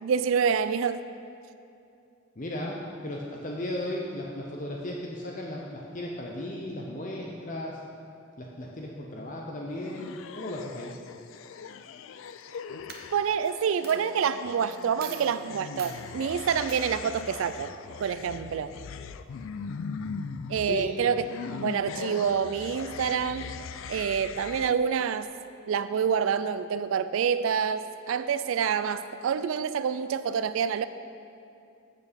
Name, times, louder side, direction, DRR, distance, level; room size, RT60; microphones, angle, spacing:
voice 1, 0.0-1.0 13.1-17.7 18.0-18.7 20.5-21.3 21.6-23.5 23.9-25.3 25.7-30.9, right 7 dB, 80° right, 12 dB, 0.3 m, -27 dB
voice 2, 2.4-7.8 8.4-10.9 20.7-20.9, left 1 dB, 40° left, -1 dB, 0.8 m, -35 dB
sound 1, 9.7-24.7, left 5 dB, 75° left, 0.4 m, -40 dB
Coin (dropping), 12.3-12.5 12.9-13.5 13.8-14.0 14.7-14.8 15.0-15.3 15.8-16.0 16.7-16.8, right 6 dB, 50° right, 0.9 m, -42 dB
8.0 x 6.9 x 6.8 m, 2.6 s
head